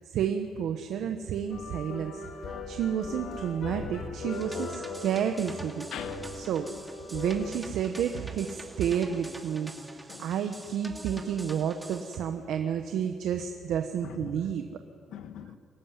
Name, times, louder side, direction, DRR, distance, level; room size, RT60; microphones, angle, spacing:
voice 1, 0.0-5.8 6.5-6.7 7.1-9.7 10.2-14.8, right 8 dB, 80° right, 6 dB, 1.2 m, -30 dB
sound 1, 1.5-7.5, left 3 dB, 65° left, 3.2 m, -39 dB
sound 2, 4.3-12.2, right 1 dB, 10° right, 2.5 m, -46 dB
voice 2, 5.9-6.4 10.1-10.4 11.1-11.4 14.0-14.4 15.1-15.6, left 9 dB, 85° left, 9 dB, 1.4 m, -43 dB
23.5 x 14.0 x 9.6 m, 2.2 s
cardioid pair, 90°, 0 cm